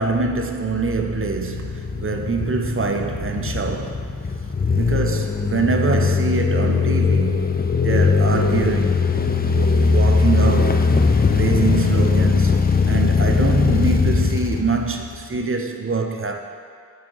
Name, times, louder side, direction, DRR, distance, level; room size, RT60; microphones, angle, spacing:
voice 1, 0.0-4.1 4.7-7.4 7.8-9.0 9.5-10.9 11.3-12.6 12.9-16.4, right 4 dB, 40° right, 0.5 m, -24 dB
sound 1, 1.0-15.4, left 4 dB, 30° left, 0.4 m, -20 dB
8.3 x 4.6 x 3.0 m
wide cardioid pair, 55°, 33 cm